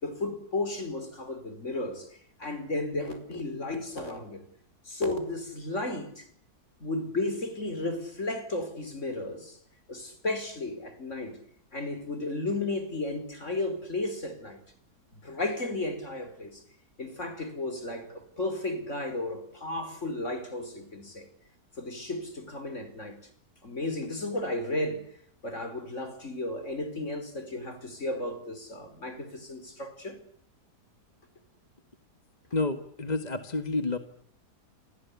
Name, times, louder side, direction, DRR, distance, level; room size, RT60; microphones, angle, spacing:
voice 1, 0.0-2.1 2.4-4.4 4.8-6.3 6.8-9.6 9.9-11.4 11.7-14.6 15.1-16.6 17.0-21.3 21.8-23.2 23.6-25.1 25.4-30.2, left 2 dB, 45° left, 5.0 m, -34 dB
voice 2, 32.5-34.0, left 3 dB, 25° left, 1.8 m, -29 dB
29.0 x 24.5 x 8.5 m
omnidirectional pair, 1.7 m